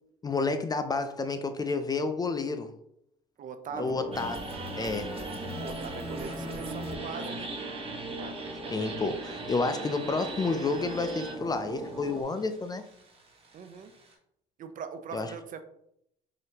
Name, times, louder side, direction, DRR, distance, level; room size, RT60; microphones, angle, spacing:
voice 1, 0.2-2.7 3.8-4.4 4.7-5.2 8.7-12.8 15.1-15.3, left 3 dB, 20° left, 9 dB, 0.4 m, -30 dB
voice 2, 3.4-4.0 5.6-7.5 13.5-13.9 14.6-15.6, right 6 dB, 45° right, 9 dB, 0.5 m, -41 dB
sound 1, 3.7-12.2, right 2 dB, 10° right, 1.3 m, -40 dB
sound 2, 4.1-14.1, right 1 dB, 30° right, 1.2 m, -41 dB
4.9 x 2.8 x 2.8 m, 0.74 s
supercardioid pair, 90°, 18 cm